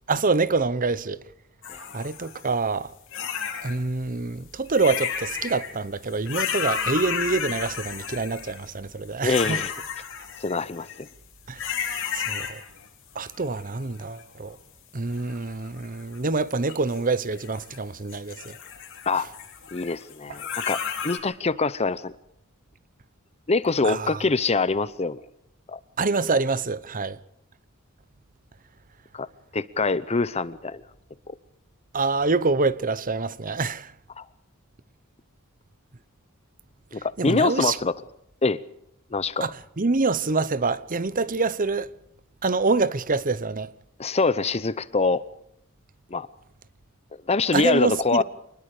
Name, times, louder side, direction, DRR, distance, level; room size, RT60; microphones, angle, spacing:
voice 1, 0.1-1.2 1.9-2.9 3.6-9.6 11.5-12.6 13.1-14.6 14.9-18.6 23.8-24.2 26.0-27.2 31.9-33.9 37.2-37.8 39.4-41.9 42.4-43.7 47.5-48.2, right 3 dB, 40° right, 1.0 m, -26 dB
sound 1, 1.6-2.5 3.1-3.8 4.7-5.7 6.1-8.7 9.3-11.1 11.6-12.9 13.2-14.2 15.1-16.2 16.6-17.8 18.1-21.2, left 7 dB, 60° left, 4.6 m, -32 dB
voice 2, 9.2-9.7 10.4-11.1 19.1-19.3 19.7-22.1 23.5-25.2 25.7-25.8 29.1-29.3 29.5-30.8 31.3-31.4 34.2-34.3 36.9-37.9 38.4-38.6 39.1-39.5 44.0-45.2 46.1-46.3 47.3-48.2, left 3 dB, 30° left, 0.8 m, -24 dB
26.0 x 20.5 x 5.0 m
head